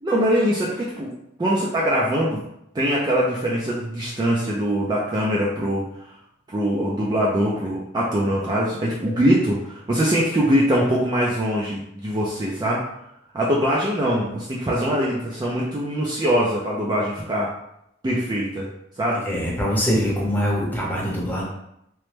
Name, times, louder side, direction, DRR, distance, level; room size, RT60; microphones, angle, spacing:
voice 1, 0.0-1.1 1.4-2.4 2.7-5.9 6.5-12.9 13.3-17.5 18.0-18.7 19.0-19.2, equal, 20° right, -5 dB, 0.3 m, -22 dB
voice 2, 19.2-21.4, equal, 10° left, -5 dB, 0.7 m, -23 dB
3.0 x 2.1 x 3.2 m, 0.79 s
head